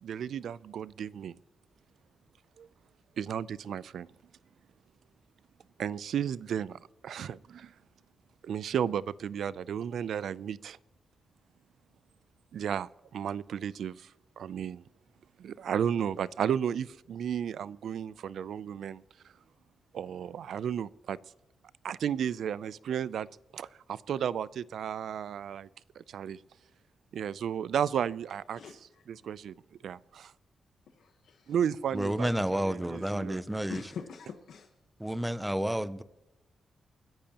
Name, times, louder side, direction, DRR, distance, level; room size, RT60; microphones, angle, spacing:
voice 1, 0.0-1.4 2.6-2.7 3.2-4.1 5.8-7.7 8.4-10.8 12.5-14.1 14.4-14.8 15.4-19.0 19.9-21.2 21.8-23.3 23.5-25.7 26.0-26.4 27.1-28.6 29.1-29.5 29.8-30.3 31.5-33.4, right 8 dB, 70° right, 0.4 m, -33 dB
voice 2, 28.5-29.0 31.0-31.5 33.7-34.7, left 6 dB, 80° left, 1.2 m, -44 dB
voice 3, 31.9-33.8 35.0-36.0, right 1 dB, 5° right, 0.5 m, -30 dB
29.0 x 10.5 x 2.9 m
wide cardioid pair, 180°, 0 cm